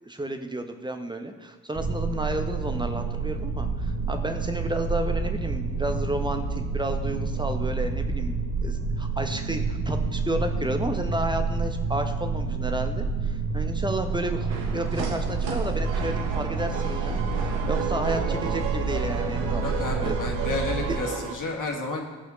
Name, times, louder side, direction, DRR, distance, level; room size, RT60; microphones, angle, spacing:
voice 1, 0.0-19.6 20.0-20.2, right 1 dB, 10° right, 6 dB, 0.9 m, -32 dB
sound 1, 1.7-21.0, right 4 dB, 35° right, 1.5 m, -28 dB
sound 2, 14.0-21.3, right 5 dB, 85° right, 0.8 m, -33 dB
voice 2, 19.6-22.1, left 3 dB, 40° left, 0 dB, 1.9 m, -31 dB
16.5 x 5.6 x 3.1 m, 1.3 s
hypercardioid pair, 40°, 49 cm